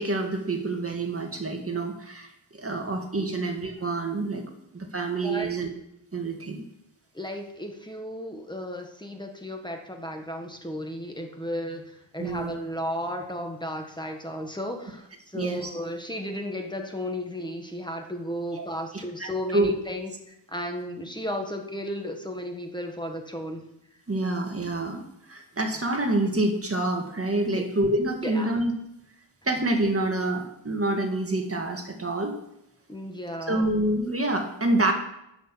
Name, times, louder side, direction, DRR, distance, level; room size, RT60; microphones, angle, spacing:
voice 1, 0.0-4.4 4.7-5.7 6.1-6.6 12.2-12.5 15.3-15.7 18.6-18.7 18.9-19.7 24.1-25.0 25.3-28.7 29.5-32.4 33.5-34.9, right 2 dB, 30° right, 3 dB, 1.8 m, -27 dB
voice 2, 5.2-5.5 7.1-23.6 27.5-27.6 28.2-28.5 32.9-33.7, equal, 10° left, 3 dB, 1.5 m, -34 dB
11.0 x 6.5 x 7.5 m, 0.82 s
wide cardioid pair, 120°, 44 cm